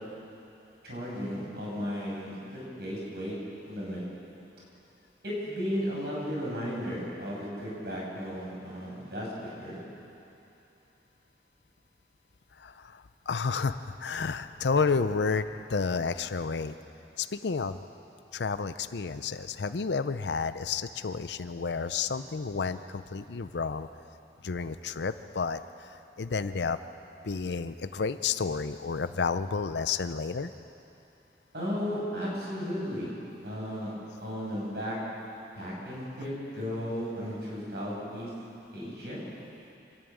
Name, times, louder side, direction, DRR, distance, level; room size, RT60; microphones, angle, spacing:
voice 1, 0.8-3.3 3.6-4.0 5.2-9.8 31.5-33.1 33.4-33.9 34.2-35.0 35.5-38.3 38.7-39.2, equal, 65° right, -5 dB, 6.8 m, -35 dB
voice 2, 12.6-16.7 17.2-17.8 18.3-23.9 24.4-25.6 26.2-26.8 27.2-30.5, left 5 dB, 80° left, 11 dB, 0.6 m, -31 dB
27.0 x 11.0 x 8.9 m, 2.9 s
head